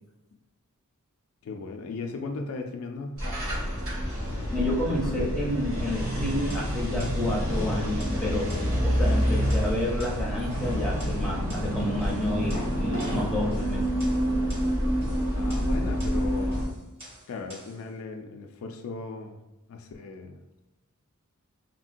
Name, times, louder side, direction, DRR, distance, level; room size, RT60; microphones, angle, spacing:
voice 1, 1.4-3.3 9.2-9.7 15.3-16.7 17.3-19.4 19.7-20.4, left 3 dB, 65° left, 4 dB, 0.3 m, -37 dB
sound 1, 3.2-16.7, equal, 80° right, 1.4 m, -27 dB
voice 2, 4.5-8.5 8.8-13.8, left 1 dB, ahead, -5 dB, 0.6 m, -30 dB
sound 2, 6.0-17.8, equal, 25° right, 0.9 m, -44 dB
3.6 x 2.1 x 2.5 m, 0.99 s
head